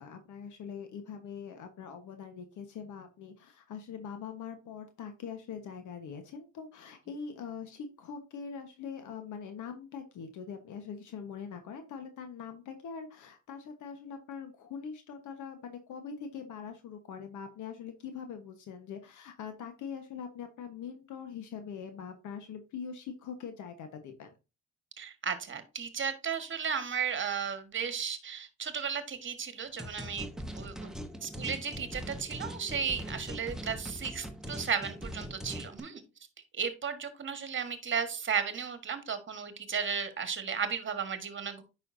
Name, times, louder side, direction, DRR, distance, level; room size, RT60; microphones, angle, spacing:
voice 1, 0.0-24.3, left 6 dB, 80° left, 7 dB, 1.3 m, -43 dB
voice 2, 25.0-30.3 30.5-30.9 31.2-36.0 36.5-41.6, right 6 dB, 40° right, 9 dB, 1.5 m, -34 dB
sound 1, 29.8-35.8, equal, ahead, 1.0 m, -41 dB
8.9 x 5.6 x 2.7 m, 0.28 s
cardioid pair, 90°, 30 cm